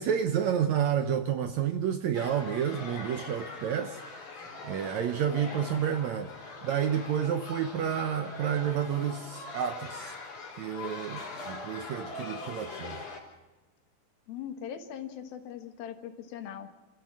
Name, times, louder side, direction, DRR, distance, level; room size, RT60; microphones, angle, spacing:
voice 1, 0.0-4.0 4.6-6.3 6.6-10.2 10.6-13.0, right 8 dB, 70° right, 1.7 m, -30 dB
sound 1, 2.1-13.2, left 3 dB, 55° left, 4.6 m, -42 dB
voice 2, 14.3-16.7, left 9 dB, 85° left, 3.3 m, -40 dB
28.5 x 15.0 x 6.2 m
omnidirectional pair, 4.2 m